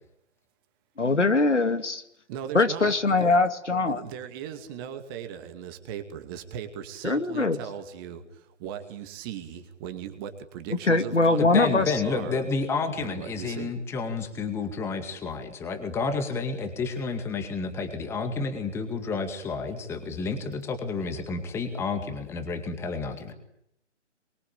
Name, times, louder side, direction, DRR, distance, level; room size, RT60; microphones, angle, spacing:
voice 1, 1.0-2.0 2.5-4.0 7.0-7.6 10.9-11.9, left 3 dB, 70° left, 9 dB, 2.6 m, -22 dB
voice 2, 2.3-3.3 3.9-12.4 13.0-13.7, right 9 dB, 20° right, 7 dB, 2.4 m, -38 dB
voice 3, 11.4-23.3, left 4 dB, 5° left, 7 dB, 2.1 m, -30 dB
25.0 x 24.0 x 8.7 m, 0.75 s
figure-of-eight pair, 140°, 36 cm